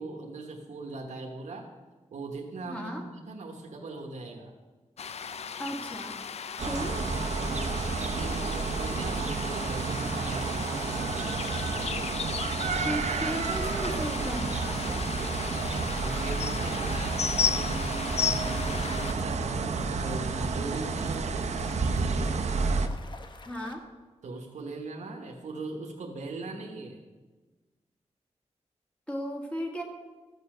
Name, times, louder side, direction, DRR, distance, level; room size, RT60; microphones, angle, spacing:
voice 1, 0.0-1.7 2.1-4.5 6.6-12.2 15.7-22.4 24.2-27.0, right 3 dB, 85° right, 1 dB, 1.3 m, -40 dB
voice 2, 2.7-3.0 5.6-6.2 6.7-7.0 12.8-15.1 23.4-23.9 29.1-29.8, equal, 10° left, 1 dB, 1.6 m, -35 dB
sound 1, 5.0-19.1, left 6 dB, 60° left, 0.5 m, -35 dB
sound 2, 6.6-22.9, right 4 dB, 70° right, 0.8 m, -30 dB
sound 3, 18.0-23.7, left 3 dB, 40° left, 0.9 m, -48 dB
14.0 x 6.9 x 6.4 m, 1.3 s
wide cardioid pair, 175°, 12 cm